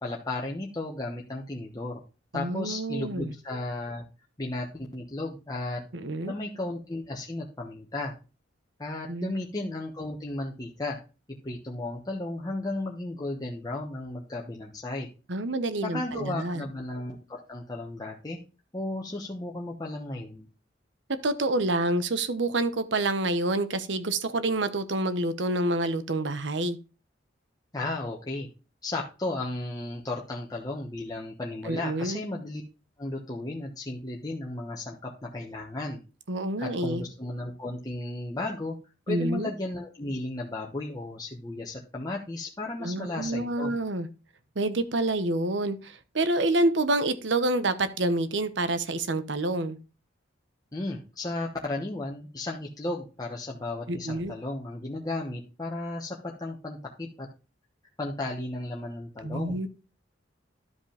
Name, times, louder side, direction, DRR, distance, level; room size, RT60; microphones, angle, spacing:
voice 1, 0.0-2.0 2.3-4.0 4.4-5.8 6.2-8.1 8.8-11.0 11.4-15.1 15.8-18.4 18.7-20.5 27.7-28.5 28.8-32.6 33.0-36.0 36.6-38.8 39.1-43.7 50.7-57.3 58.0-59.6, left 2 dB, 20° left, 1.1 m, -34 dB
voice 2, 2.3-3.3 5.9-6.3 9.1-9.3 15.3-16.6 21.2-26.8 31.6-32.2 36.3-37.0 39.1-39.5 42.8-44.1 44.6-49.8 53.9-54.3 59.2-59.7, right 2 dB, 70° right, 1.0 m, -28 dB
12.5 x 5.1 x 3.4 m
head